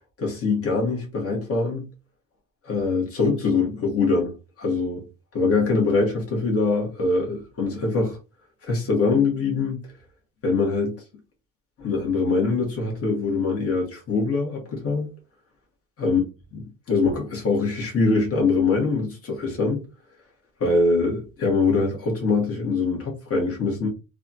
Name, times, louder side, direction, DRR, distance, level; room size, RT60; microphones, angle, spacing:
voice 1, 0.2-1.9 2.6-5.0 5.3-8.2 8.6-9.8 10.4-11.0 11.8-15.1 16.0-16.2 16.5-19.8 20.6-23.9, left 3 dB, 50° left, 1.5 m, -23 dB
3.4 x 2.3 x 2.7 m
cardioid pair, 90°, 30 cm